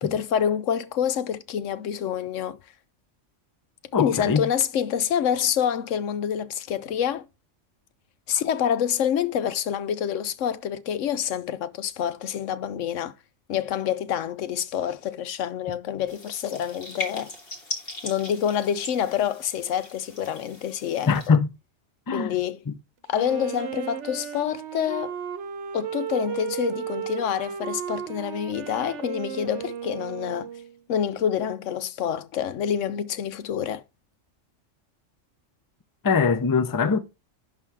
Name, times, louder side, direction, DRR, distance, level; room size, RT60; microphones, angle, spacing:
voice 1, 0.0-2.6 4.0-7.3 8.3-13.1 13.5-17.3 18.0-21.1 22.1-22.6 23.1-25.1 25.7-30.5 30.9-33.8, left 9 dB, 75° left, 1.0 m, -27 dB
voice 2, 3.9-4.5 21.1-21.5 22.1-22.3 36.0-37.0, left 5 dB, 25° left, 0.5 m, -22 dB
sound 1, 16.1-21.3, left 2 dB, 50° left, 2.1 m, -39 dB
Wind instrument woodwind instrument, 23.1-30.8, right 8 dB, 70° right, 1.0 m, -34 dB
11.0 x 3.8 x 4.7 m
omnidirectional pair, 1.3 m